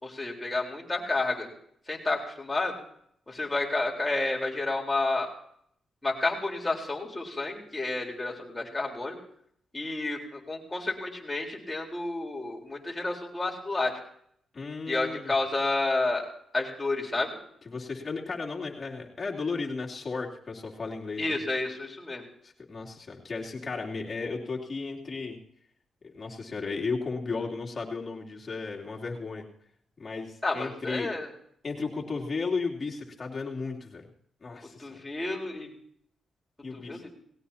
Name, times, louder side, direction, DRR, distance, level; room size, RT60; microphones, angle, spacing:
voice 1, 0.0-1.5 1.9-2.7 3.3-5.3 6.0-9.2 9.7-13.9 14.9-16.3 16.5-17.4 21.2-22.2 30.4-31.3 34.8-35.7 36.7-37.2, left 2 dB, 20° left, -1 dB, 4.2 m, -30 dB
voice 2, 14.5-15.3 17.6-21.3 22.4-25.4 26.0-29.5 30.0-31.1 31.6-34.1 34.4-35.0 36.6-37.0, left 4 dB, 40° left, -2 dB, 3.1 m, -34 dB
19.0 x 17.5 x 2.9 m, 0.67 s
cardioid pair, 65°, 0 cm